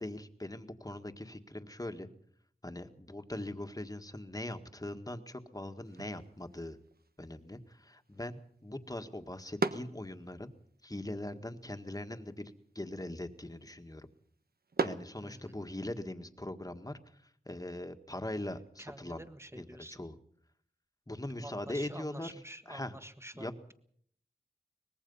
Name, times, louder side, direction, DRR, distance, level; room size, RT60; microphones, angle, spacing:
voice 1, 0.0-2.1 2.6-6.8 7.2-10.5 10.8-14.1 14.8-17.0 17.4-19.3 19.5-20.1 21.1-22.3 22.7-23.0 23.3-23.5, left 1 dB, 20° left, 7 dB, 1.7 m, -41 dB
sound 1, 5.8-15.9, right 3 dB, 65° right, 1.2 m, -42 dB
voice 2, 15.2-15.6 18.8-20.0 21.4-23.7, right 1 dB, 15° right, 10 dB, 1.7 m, -48 dB
23.5 x 20.5 x 5.6 m, 0.63 s
wide cardioid pair, 65°, 17 cm